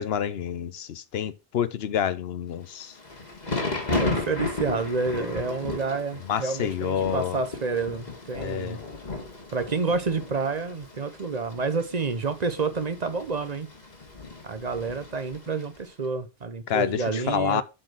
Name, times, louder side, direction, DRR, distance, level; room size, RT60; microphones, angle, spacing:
voice 1, 0.0-2.9 6.3-7.4 8.3-8.8 16.7-17.6, left 9 dB, 80° left, 0.9 m, -28 dB
Thunder / Rain, 2.7-15.8, left 2 dB, 45° left, 1.7 m, -35 dB
voice 2, 3.9-8.8 9.5-13.7 14.4-17.6, right 4 dB, 45° right, 0.8 m, -29 dB
7.5 x 4.3 x 6.0 m
omnidirectional pair, 1.0 m